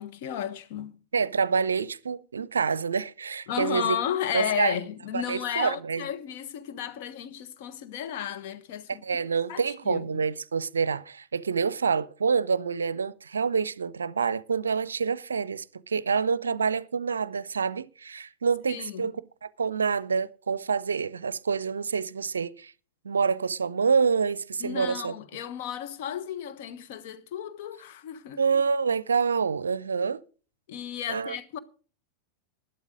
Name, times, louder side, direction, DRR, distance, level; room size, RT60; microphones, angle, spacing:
voice 1, 0.0-1.0 3.5-9.0 9.5-10.2 18.7-19.1 24.6-28.4 30.7-31.6, left 10 dB, 50° left, 1.2 m, -33 dB
voice 2, 1.1-4.0 4.3-4.7 5.1-6.1 8.9-19.1 19.4-22.7 23.0-25.2 28.4-30.2 31.1-31.4, right 5 dB, 70° right, 0.5 m, -27 dB
12.0 x 11.5 x 5.0 m
figure-of-eight pair, 90°, 0 cm